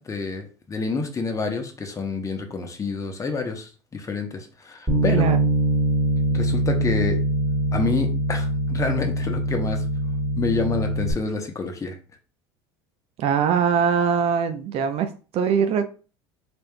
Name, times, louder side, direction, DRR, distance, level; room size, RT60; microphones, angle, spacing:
voice 1, 0.1-5.3 6.3-7.2 7.7-9.8 10.4-12.0, left 4 dB, 25° left, 0.9 m, -28 dB
Bass guitar, 4.9-11.1, right 1 dB, 20° right, 1.6 m, -23 dB
voice 2, 5.1-5.5 13.2-15.9, right 7 dB, 50° right, 0.5 m, -22 dB
4.1 x 3.4 x 2.3 m
hypercardioid pair, 85°, 13 cm